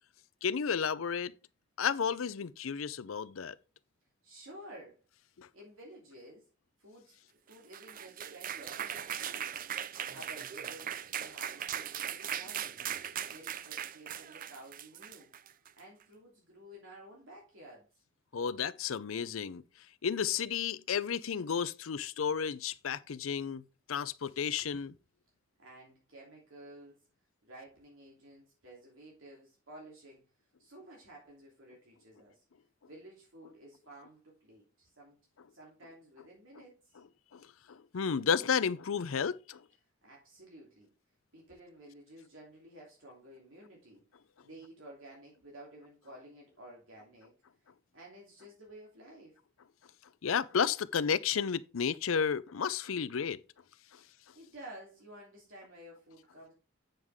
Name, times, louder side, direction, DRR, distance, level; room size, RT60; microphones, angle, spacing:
voice 1, 0.4-1.3 1.8-3.6 5.4-5.5 18.3-19.6 20.0-23.6 23.9-25.0 37.3-39.6 50.2-53.4 53.9-54.0, left 7 dB, 80° left, 0.5 m, -32 dB
voice 2, 4.2-5.0 5.5-6.5 6.8-9.6 10.1-12.8 13.3-15.3 15.8-17.9 25.6-27.1 27.4-30.2 30.6-32.4 32.9-35.2 35.5-37.0 40.0-40.9 41.3-44.1 44.4-47.3 47.9-49.4 53.9-56.5, right 1 dB, 75° right, 3.1 m, -53 dB
sound 1, 7.5-15.8, right 9 dB, 45° right, 0.5 m, -39 dB
9.1 x 6.4 x 3.5 m
head